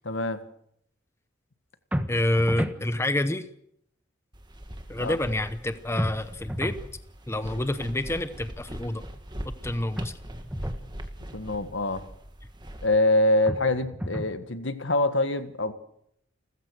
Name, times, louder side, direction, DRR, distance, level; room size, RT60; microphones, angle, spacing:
voice 1, 0.0-0.4 5.0-5.2 11.3-12.0 12.8-15.7, left 2 dB, 75° left, 10 dB, 1.6 m, -24 dB
sound 1, 1.9-2.8 6.0-6.9 10.0-10.9 13.5-14.4, equal, 10° right, 1.3 m, -32 dB
voice 2, 2.1-3.5 4.9-6.7 7.3-9.0 9.4-10.2, left 1 dB, 15° left, 11 dB, 0.9 m, -28 dB
sound 2, 4.3-12.9, equal, 25° right, 2.0 m, -41 dB
29.0 x 14.5 x 6.5 m, 0.74 s
head